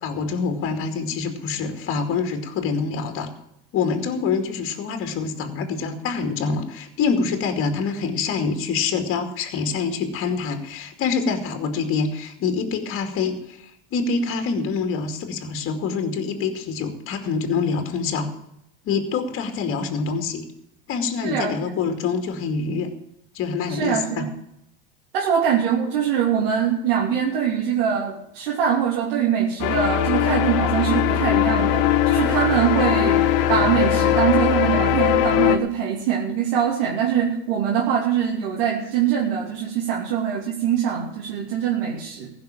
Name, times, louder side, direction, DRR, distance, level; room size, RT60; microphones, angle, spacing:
voice 1, 0.0-3.3 3.7-18.3 18.8-20.4 20.9-22.9 23.3-24.3, left 5 dB, 45° left, 6 dB, 2.4 m, -25 dB
voice 2, 21.2-21.6 23.7-24.3 25.1-42.3, right 8 dB, 70° right, -4 dB, 2.8 m, -23 dB
sound 1, 29.6-35.6, left 10 dB, 65° left, 1.3 m, -20 dB
15.5 x 6.3 x 9.0 m, 0.78 s
hypercardioid pair, 100°, 29 cm